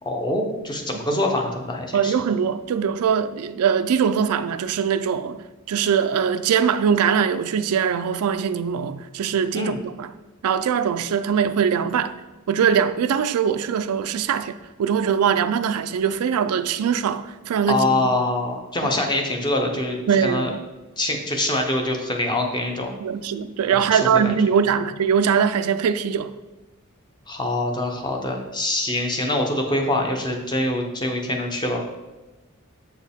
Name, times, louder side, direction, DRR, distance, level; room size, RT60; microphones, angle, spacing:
voice 1, 0.0-2.1 9.5-9.8 17.7-20.5 21.0-22.9 23.7-24.3 27.3-31.8, left 1 dB, 20° left, 0.7 m, -24 dB
voice 2, 1.9-5.4 5.7-10.1 10.4-12.1 12.5-18.1 18.8-18.9 20.1-20.6 23.0-26.3, right 7 dB, 85° right, 0.3 m, -22 dB
7.0 x 4.6 x 3.5 m
head